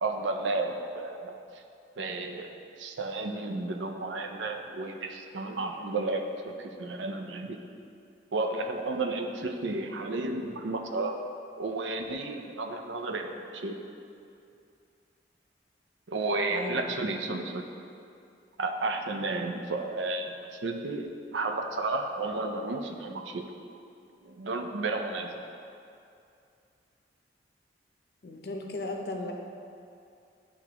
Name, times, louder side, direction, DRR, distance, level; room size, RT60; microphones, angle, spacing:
voice 1, 0.0-1.6 2.0-2.5 2.8-7.6 8.3-11.2 11.6-13.8 16.1-17.6 18.6-20.4 20.6-23.4 24.2-25.4, right 2 dB, 90° right, 5 dB, 0.5 m, -32 dB
voice 2, 16.5-17.1 28.2-29.3, left 2 dB, 55° left, 2 dB, 0.6 m, -36 dB
10.0 x 3.5 x 2.9 m, 2.5 s
head